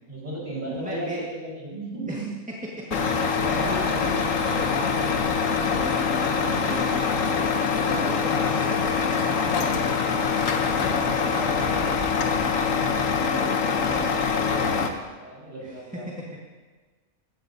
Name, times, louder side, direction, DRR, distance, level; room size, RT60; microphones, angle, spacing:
voice 1, 0.1-2.3 2.9-3.9 12.7-14.9 15.2-16.1, right 1 dB, 30° right, -5 dB, 4.9 m, -36 dB
voice 2, 0.7-1.2 2.1-2.2 2.7-12.7 15.6-15.7 16.2-16.3, equal, 5° right, -5 dB, 1.5 m, -36 dB
Truck, 2.9-14.9, left 5 dB, 65° left, 1.3 m, -24 dB
17.0 x 13.5 x 2.8 m, 1.4 s
omnidirectional pair, 1.5 m